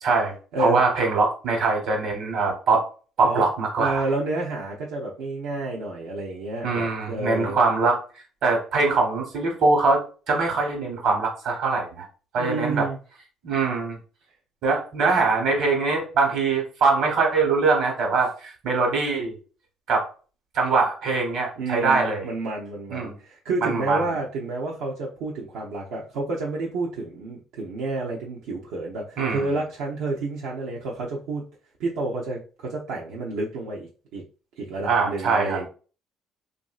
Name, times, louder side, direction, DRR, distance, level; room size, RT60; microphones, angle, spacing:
voice 1, 0.0-2.8 3.2-4.0 6.6-8.0 8.4-10.0 10.3-12.1 12.3-12.9 13.4-14.0 14.6-19.3 19.9-20.1 20.5-22.3 22.9-23.1 23.6-24.0 29.2-29.5 34.9-35.6, right 4 dB, 65° right, 2 dB, 1.2 m, -22 dB
voice 2, 3.8-7.6 12.4-13.0 21.6-31.5 31.8-34.2 34.6-35.7, right 2 dB, 90° right, -4 dB, 0.6 m, -30 dB
3.1 x 2.5 x 2.4 m, 0.36 s
cardioid pair, 115°, 0 cm